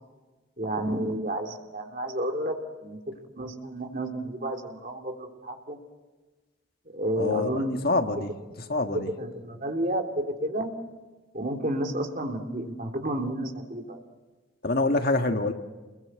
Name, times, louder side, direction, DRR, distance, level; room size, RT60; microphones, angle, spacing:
voice 1, 0.6-2.6 2.8-3.0 3.4-5.8 6.9-7.8 8.9-10.7 11.3-14.0, right 1 dB, 40° right, 3 dB, 3.2 m, -31 dB
voice 2, 7.2-8.3 8.7-9.1 14.6-15.5, left 2 dB, 50° left, 6 dB, 1.6 m, -26 dB
29.5 x 22.0 x 8.1 m, 1.3 s
head